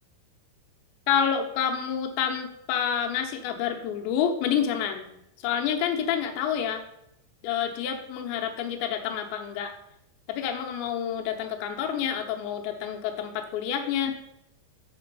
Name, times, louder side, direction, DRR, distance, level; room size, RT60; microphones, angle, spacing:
voice 1, 1.1-5.1 5.4-6.8 7.4-9.7 10.3-14.2, left 8 dB, 85° left, 4 dB, 3.2 m, -28 dB
7.8 x 6.0 x 5.3 m, 0.80 s
omnidirectional pair, 5.0 m